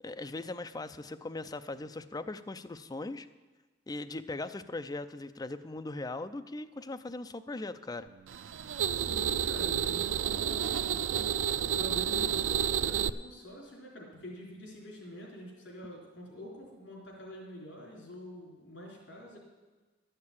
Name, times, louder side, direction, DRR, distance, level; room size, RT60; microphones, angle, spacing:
voice 1, 0.0-3.3 3.9-8.1, left 2 dB, 20° left, 10 dB, 0.4 m, -39 dB
sound 1, 8.3-13.1, right 8 dB, 80° right, 0.4 m, -30 dB
voice 2, 8.9-19.4, equal, 80° left, -3 dB, 3.7 m, -46 dB
12.0 x 6.6 x 8.6 m, 1.3 s
head